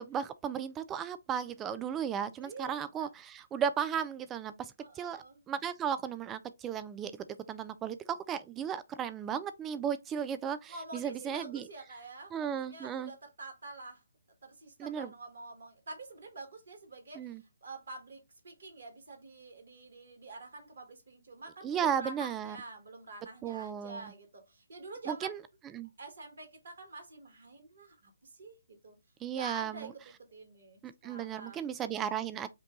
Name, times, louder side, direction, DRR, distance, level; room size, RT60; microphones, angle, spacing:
voice 1, 0.0-7.1 7.5-11.6 12.3-13.1 14.8-15.1 17.2-17.4 21.6-22.6 23.4-24.0 25.1-25.4 25.7-25.9 29.2-29.9 30.8-32.5, right 8 dB, 15° right, 0.3 m, -35 dB
voice 2, 2.4-3.1 4.8-5.4 10.7-14.0 14.4-25.3 26.0-29.0 29.3-31.6, right 3 dB, 55° right, 1.7 m, -47 dB
5.4 x 2.3 x 3.8 m
figure-of-eight pair, 140°, 0 cm